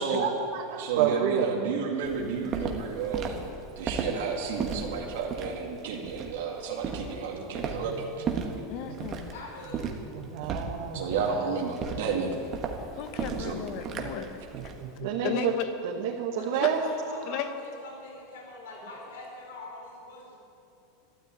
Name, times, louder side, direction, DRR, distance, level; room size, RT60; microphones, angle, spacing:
voice 1, 0.2-1.5 6.7-7.0 9.0-9.1 10.3-11.0 14.8-15.5 15.8-16.8, right 9 dB, 55° right, -1 dB, 1.5 m, -29 dB
voice 2, 0.8-3.4 3.8-8.2 10.9-12.4 13.3-13.6, right 5 dB, 70° right, -1 dB, 2.3 m, -32 dB
Walk footsteps, 2.0-14.8, right 5 dB, 25° right, 1.3 m, -35 dB
voice 3, 8.7-9.3 13.0-14.4 15.0-15.7 16.6-16.7 17.3-17.5, left 9 dB, 40° left, 8 dB, 1.3 m, -35 dB
voice 4, 9.3-9.9 11.2-11.6 16.3-20.4, left 2 dB, 80° left, -1 dB, 4.6 m, -43 dB
13.0 x 12.5 x 8.9 m, 2.6 s
supercardioid pair, 170°, 0 cm